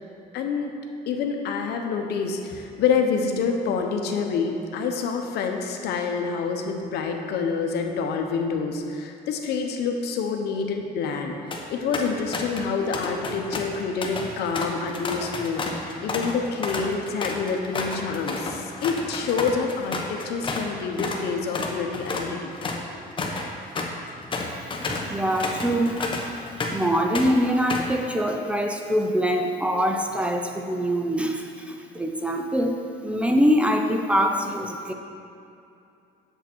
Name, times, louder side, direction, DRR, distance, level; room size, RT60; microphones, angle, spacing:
voice 1, 0.3-0.7 1.1-11.3 11.7-22.5, left 5 dB, 75° left, 3 dB, 0.9 m, -27 dB
sound 1, 11.3-11.6 11.9-12.7 12.9-20.7 21.0-21.2 21.5-26.9 27.1-28.0, left 3 dB, 30° left, 1.1 m, -31 dB
voice 2, 25.1-26.0 26.7-34.9, equal, 5° right, 3 dB, 0.7 m, -24 dB
8.0 x 7.2 x 4.5 m, 2.6 s
cardioid pair, 110°, 17 cm